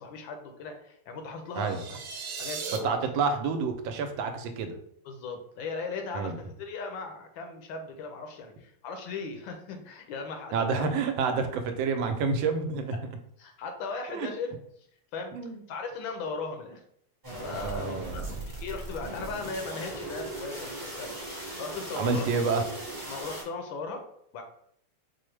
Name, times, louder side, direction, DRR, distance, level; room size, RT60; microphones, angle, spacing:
voice 1, 0.0-2.0 2.4-3.0 5.0-10.9 13.4-14.5 15.1-16.8 17.4-21.2 21.6-22.4 23.1-24.0 24.3-24.4, left 4 dB, 85° left, 5 dB, 1.4 m, -38 dB
sound 1, 1.6-2.8, right 5 dB, 70° right, 0.9 m, -37 dB
voice 2, 2.8-4.8 6.1-6.3 10.5-13.0 14.1-14.3 15.3-15.6 17.6-18.3 21.9-22.7, right 4 dB, 90° right, 7 dB, 1.3 m, -28 dB
sound 2, 17.2-23.4, right 1 dB, 15° right, 0.8 m, -38 dB
4.7 x 2.0 x 3.2 m, 0.69 s
omnidirectional pair, 2.1 m